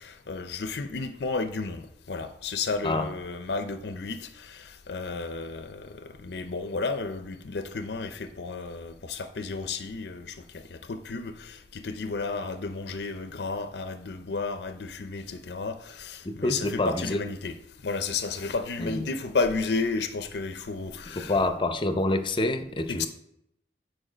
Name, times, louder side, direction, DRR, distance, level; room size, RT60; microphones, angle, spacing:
voice 1, 0.0-17.5 17.8-21.3 22.9-23.1, left 4 dB, 70° left, 0.5 m, -32 dB
voice 2, 16.2-17.2 18.8-19.1 21.1-23.1, left 2 dB, 30° left, 0.6 m, -27 dB
8.7 x 4.6 x 5.0 m
head